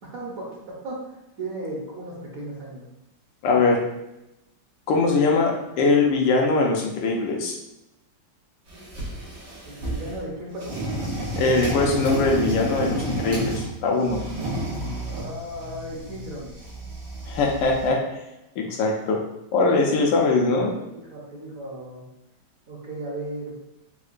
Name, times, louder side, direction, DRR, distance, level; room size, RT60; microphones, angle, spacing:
voice 1, 0.0-2.9 9.6-10.8 15.0-16.6 20.9-22.1 22.7-23.5, right 1 dB, 60° right, -4 dB, 1.0 m, -36 dB
voice 2, 3.4-3.8 4.9-7.6 11.4-14.2 17.3-18.2 18.6-19.2 19.5-20.7, left 3 dB, 80° left, 0 dB, 1.3 m, -21 dB
sound 1, 8.7-10.2 10.6-13.7 14.0-17.9, right 1 dB, 85° right, 1.8 m, -31 dB
4.6 x 2.1 x 2.5 m, 0.92 s
omnidirectional pair, 2.0 m